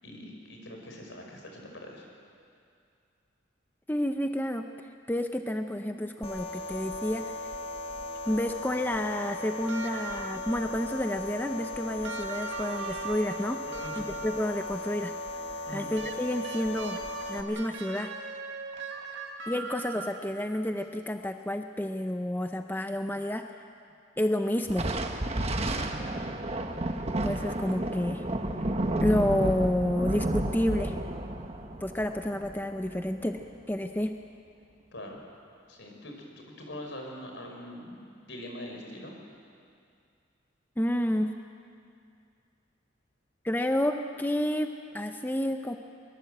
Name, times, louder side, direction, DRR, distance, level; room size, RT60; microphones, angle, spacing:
voice 1, 0.0-2.1 13.7-14.1 15.7-15.9 25.7-26.1 34.9-35.2 35.7-39.1, left 1 dB, 70° left, 1 dB, 5.2 m, -43 dB
voice 2, 3.9-4.6 5.1-7.4 8.3-13.6 14.0-15.1 15.7-17.0 17.3-18.1 19.5-23.5 24.2-24.9 27.2-28.2 29.0-30.9 31.8-33.4 33.7-34.1 40.8-41.3 43.4-45.7, left 1 dB, 10° left, 5 dB, 0.7 m, -30 dB
sound 1, 6.2-17.4, left 2 dB, 30° left, 1.7 m, -38 dB
sound 2, 9.7-10.6 12.0-14.6 16.0-20.4 21.8-21.9, right 4 dB, 65° right, 2.0 m, -40 dB
Thunder, 24.7-33.4, right 1 dB, 30° right, 1.3 m, -31 dB
23.0 x 22.0 x 7.9 m, 2.4 s
head